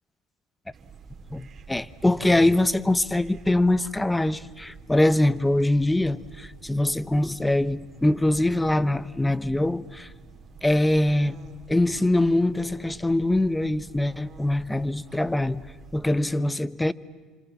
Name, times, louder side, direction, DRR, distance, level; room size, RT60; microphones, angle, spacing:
sound 1, 0.7-16.2, right 4 dB, 40° right, 4.1 m, -48 dB
voice 1, 1.3-10.1 10.6-11.4 11.7-15.6 15.9-16.9, left 1 dB, 10° left, 1.0 m, -23 dB
29.5 x 26.5 x 7.4 m
supercardioid pair, 100°, 0 cm